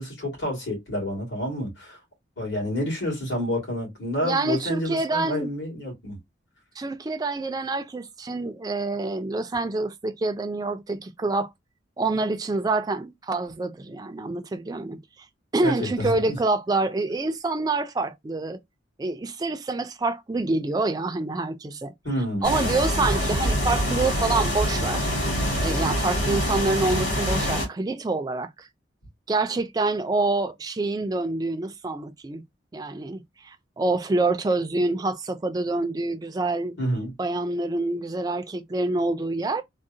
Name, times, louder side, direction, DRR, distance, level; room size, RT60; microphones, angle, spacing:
voice 1, 0.0-2.0 2.4-6.2 15.6-16.4 22.0-22.5 36.8-37.1, equal, 65° left, 2.2 m, -29 dB
voice 2, 4.2-5.5 6.8-11.5 12.0-15.0 15.5-18.6 19.0-21.9 22.4-25.1 25.6-28.7 29.3-32.4 32.7-36.8 37.2-39.6, right 3 dB, 20° right, 0.3 m, -26 dB
sound 1, 22.4-27.7, equal, 80° left, 2.4 m, -25 dB
3.6 x 2.0 x 2.6 m
head